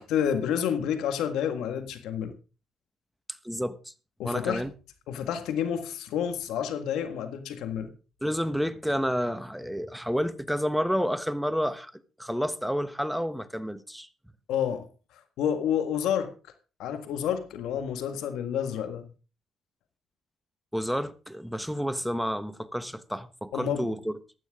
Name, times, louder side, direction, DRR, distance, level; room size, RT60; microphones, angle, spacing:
voice 1, 0.0-2.3 4.2-4.6 5.1-7.9 14.5-14.9 15.4-16.3 16.8-19.1 23.5-23.9, left 9 dB, 90° left, 1.7 m, -29 dB
voice 2, 3.4-3.9 4.2-4.7 8.2-14.1 20.7-24.1, equal, ahead, 1.2 m, -30 dB
15.5 x 11.5 x 3.7 m
cardioid pair, 90°, 0 cm